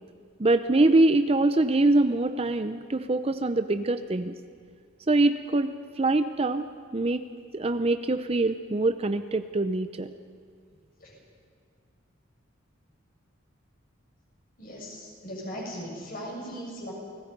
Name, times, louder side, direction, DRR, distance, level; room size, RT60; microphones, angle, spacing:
voice 1, 0.4-4.3 5.1-6.6 6.9-7.2 7.5-10.1, right 2 dB, 30° right, 10 dB, 0.6 m, -24 dB
voice 2, 14.6-16.9, equal, 45° left, -2 dB, 7.0 m, -38 dB
29.5 x 19.0 x 5.4 m, 2.1 s
head